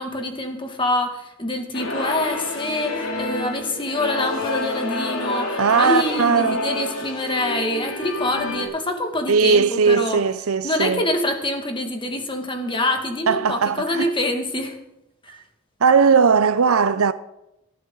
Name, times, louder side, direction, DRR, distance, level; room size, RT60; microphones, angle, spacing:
voice 1, 0.0-10.2 10.6-14.8 15.2-15.3, left 1 dB, 25° left, 2.0 m, -25 dB
sound 1, 1.7-8.6, left 2 dB, 65° left, 2.9 m, -28 dB
voice 2, 5.6-6.6 9.3-11.0 13.3-14.1 15.3-15.4 15.8-17.1, right 5 dB, 85° right, 0.7 m, -18 dB
18.0 x 12.0 x 4.0 m
head